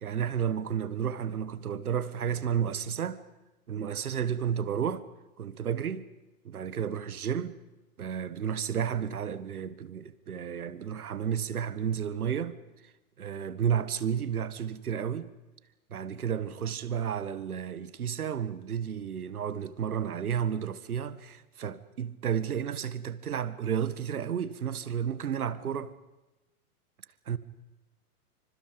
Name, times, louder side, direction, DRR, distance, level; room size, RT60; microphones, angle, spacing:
voice 1, 0.0-3.2 3.7-5.0 5.4-6.0 6.5-7.5 8.0-12.6 13.2-15.3 15.9-25.9 27.3-27.4, right 8 dB, 70° right, 1.7 m, -32 dB
27.5 x 26.0 x 5.3 m
figure-of-eight pair, 105°, 45 cm